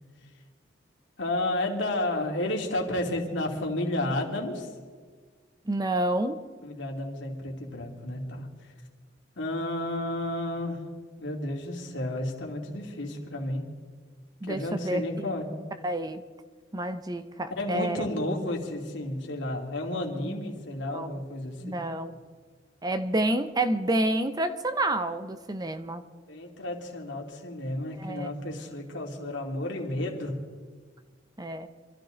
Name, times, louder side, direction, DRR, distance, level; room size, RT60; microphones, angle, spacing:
voice 1, 1.2-4.7 6.6-8.5 9.4-10.8 11.2-13.6 14.4-15.5 17.6-21.7 26.3-30.4, left 1 dB, 70° left, 0 dB, 2.7 m, -32 dB
voice 2, 5.7-6.4 14.4-15.3 15.8-16.2 16.7-18.0 20.9-21.2 21.6-22.2 22.8-26.0 28.0-28.3 31.4-31.7, right 1 dB, 20° right, 10 dB, 0.7 m, -29 dB
26.0 x 14.0 x 3.9 m, 1.5 s
head